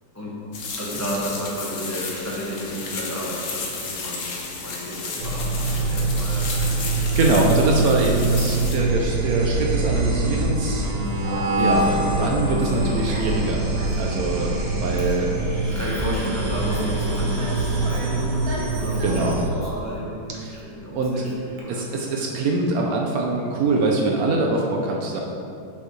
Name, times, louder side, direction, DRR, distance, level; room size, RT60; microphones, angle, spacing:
sound 1, 0.5-8.8, left 3 dB, 60° left, 0.8 m, -33 dB
voice 1, 0.6-7.2 14.2-14.5 15.0-15.2 15.7-21.9, equal, 15° left, -7 dB, 0.6 m, -32 dB
sound 2, 5.2-19.5, right 2 dB, 55° right, 0.9 m, -24 dB
voice 2, 7.2-10.8 11.6-13.6 14.0-14.5 14.8-15.3 15.6-15.8 18.9-19.4 20.4-20.6 20.9-21.2 21.7-25.2, right 2 dB, 85° right, 0 dB, 0.7 m, -23 dB
Conversation, 10.9-21.6, equal, 70° right, 1.8 m, -37 dB
7.0 x 5.4 x 3.2 m, 2.5 s
omnidirectional pair, 2.2 m